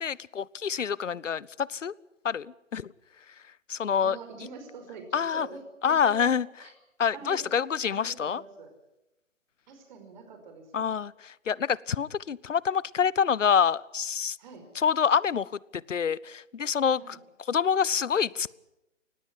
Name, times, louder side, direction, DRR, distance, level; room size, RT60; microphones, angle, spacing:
voice 1, 0.0-1.9 2.2-2.9 3.7-4.2 5.1-5.5 5.8-6.5 7.0-8.4 10.7-14.4 14.8-15.5 15.9-17.2 17.5-18.5, left 7 dB, 75° left, 24 dB, 0.7 m, -26 dB
voice 2, 4.0-5.6 5.9-6.3 6.6-6.7 7.1-7.5 7.9-8.7 9.7-10.9 14.4-14.6 17.0-17.2, right 4 dB, 35° right, 6 dB, 5.1 m, -44 dB
19.0 x 16.5 x 9.8 m, 0.92 s
figure-of-eight pair, 140°, 38 cm